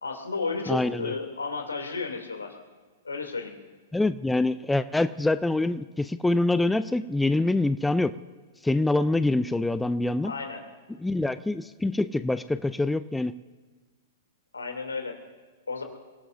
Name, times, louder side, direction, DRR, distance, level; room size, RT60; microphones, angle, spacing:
voice 1, 0.0-2.6 3.0-3.5 10.2-10.6 14.5-15.2 15.7-15.8, left 4 dB, 80° left, 4 dB, 2.9 m, -33 dB
voice 2, 0.7-1.1 3.9-8.1 8.6-10.3 11.0-13.3, left 2 dB, 5° left, 13 dB, 0.4 m, -25 dB
29.5 x 18.0 x 2.7 m, 1.4 s
figure-of-eight pair, 110°, 0 cm